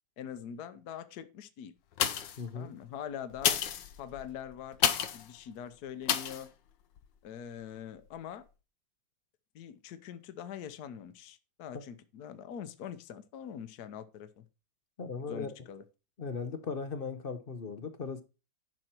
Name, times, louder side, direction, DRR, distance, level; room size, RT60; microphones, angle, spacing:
voice 1, 0.2-1.7 2.5-3.6 4.0-6.5 7.2-8.4 9.5-14.4 15.3-15.8, left 9 dB, 65° left, 1.3 m, -43 dB
sound 1, 1.9-2.5 3.3-5.3 6.1-6.4 7.0-7.1, left 9 dB, 80° left, 1.5 m, -30 dB
voice 2, 2.4-2.7 15.0-15.5 16.2-18.2, left 5 dB, 45° left, 0.7 m, -37 dB
11.0 x 6.1 x 4.4 m
omnidirectional pair, 2.0 m